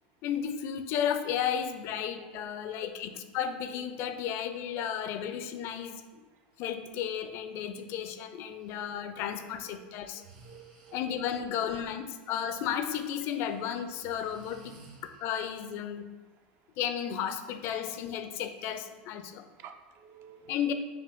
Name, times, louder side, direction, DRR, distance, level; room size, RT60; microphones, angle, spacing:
voice 1, 0.2-6.0 6.6-10.2 10.9-16.1 16.8-19.5 20.5-20.7, left 9 dB, 55° left, 9 dB, 0.4 m, -33 dB
voice 2, 2.2-2.7 8.8-8.9 9.3-9.5 9.8-9.9 10.4-11.3 19.6-20.6, right 7 dB, 45° right, 7 dB, 0.4 m, -52 dB
Breathing, 8.6-8.8 10.0-11.3 12.9-15.6, right 3 dB, 75° right, 0.9 m, -56 dB
5.5 x 2.2 x 3.5 m, 1.2 s
hypercardioid pair, 90°, 5 cm